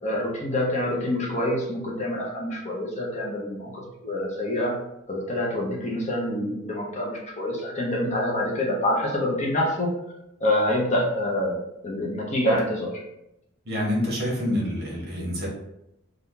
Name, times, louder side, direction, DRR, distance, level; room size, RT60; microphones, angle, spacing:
voice 1, 0.0-4.7 5.1-9.9 10.4-11.6 11.8-13.0, left 1 dB, 35° left, -2 dB, 0.7 m, -26 dB
voice 2, 13.6-15.5, left 1 dB, 50° right, -3 dB, 1.1 m, -27 dB
2.8 x 2.4 x 3.6 m, 0.83 s
head